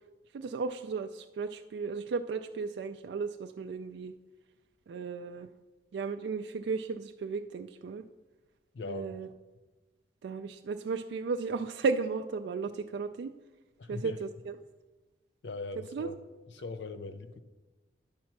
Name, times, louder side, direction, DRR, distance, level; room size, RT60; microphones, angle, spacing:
voice 1, 0.3-4.1 4.9-5.5 5.9-8.0 8.9-9.3 10.2-13.3 13.9-14.6 15.9-16.1, right 4 dB, 75° right, 0.3 m, -34 dB
voice 2, 8.7-9.2 13.8-14.2 15.4-16.2 16.5-17.4, left 3 dB, 80° left, 0.6 m, -40 dB
10.5 x 4.3 x 5.9 m
head